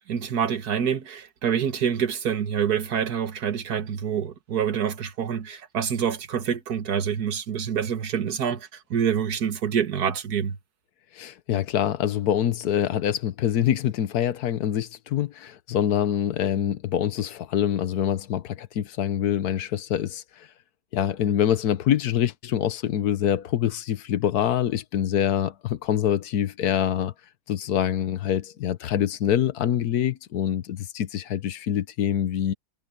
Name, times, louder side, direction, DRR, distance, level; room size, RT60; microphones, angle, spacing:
voice 1, 0.1-10.6, right 8 dB, 85° right, 1.9 m, -26 dB
voice 2, 11.1-20.5 20.9-27.1 27.5-32.5, left 10 dB, 85° left, 1.4 m, -25 dB
omnidirectional pair, 1.6 m